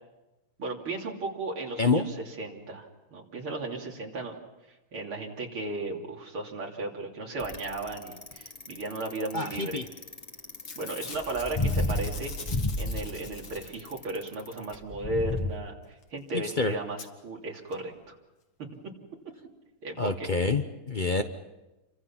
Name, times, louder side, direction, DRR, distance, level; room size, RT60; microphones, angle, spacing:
voice 1, 0.6-4.3 4.7-9.9 10.8-18.2 18.6-18.7 19.8-20.3, right 2 dB, 80° right, 0 dB, 3.9 m, -35 dB
Bicycle, 7.4-15.5, left 2 dB, 20° left, 1.5 m, -32 dB
voice 2, 9.3-9.8 16.3-16.7 20.0-21.2, left 3 dB, 40° left, 8 dB, 0.6 m, -27 dB
Packing tape duct tape / Tearing, 10.0-10.2 10.5-14.1 16.0-16.1 16.3-16.4 17.0-17.1 17.7-17.8 18.0-18.1, left 5 dB, 70° left, 2.6 m, -44 dB
29.5 x 25.0 x 5.9 m, 1.0 s
omnidirectional pair, 2.3 m